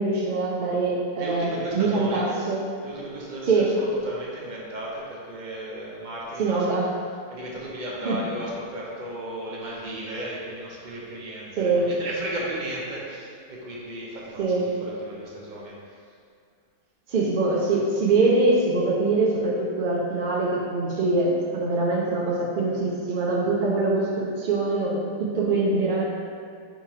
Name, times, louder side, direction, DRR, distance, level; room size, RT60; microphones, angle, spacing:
voice 1, 0.0-2.6 3.4-3.7 6.4-6.9 8.0-8.2 11.6-11.9 14.4-14.7 17.1-26.0, right 3 dB, 90° right, -4 dB, 0.4 m, -23 dB
voice 2, 1.2-2.3 2.8-6.7 7.0-16.0, right 1 dB, 45° right, -4 dB, 0.6 m, -35 dB
3.8 x 2.9 x 4.8 m, 2.3 s
omnidirectional pair, 1.6 m